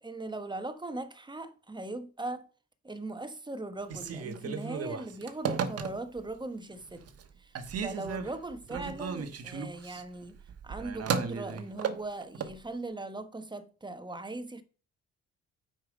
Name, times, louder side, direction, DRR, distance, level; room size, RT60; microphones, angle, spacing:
voice 1, 0.0-2.5 2.8-7.1 7.4-7.5 7.8-10.4 10.6-14.6, right 2 dB, 15° right, 1.0 m, -39 dB
Telephone, 3.8-6.3 6.8-7.3 7.5-12.6, right 6 dB, 55° right, 1.2 m, -35 dB
8.6 x 4.9 x 5.1 m
cardioid pair, 90°, 30 cm